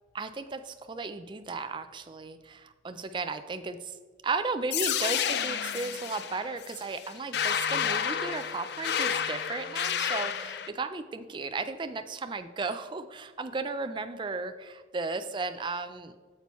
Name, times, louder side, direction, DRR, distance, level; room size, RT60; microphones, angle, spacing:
voice 1, 0.1-4.0 4.2-16.2, right 3 dB, 25° right, 9 dB, 0.3 m, -35 dB
Digital Hills, 4.7-10.7, left 8 dB, 55° left, 0.4 m, -30 dB
8.7 x 6.9 x 3.0 m, 1.5 s
head